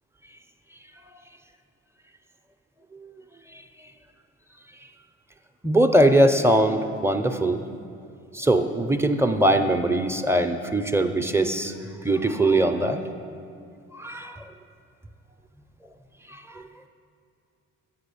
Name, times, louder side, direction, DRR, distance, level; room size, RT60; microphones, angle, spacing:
voice 1, 5.6-7.6 8.3-13.0 13.9-14.4 16.3-16.7, right 1 dB, 10° right, 6 dB, 0.4 m, -22 dB
7.8 x 5.7 x 6.9 m, 2.4 s
cardioid pair, 90°, 30 cm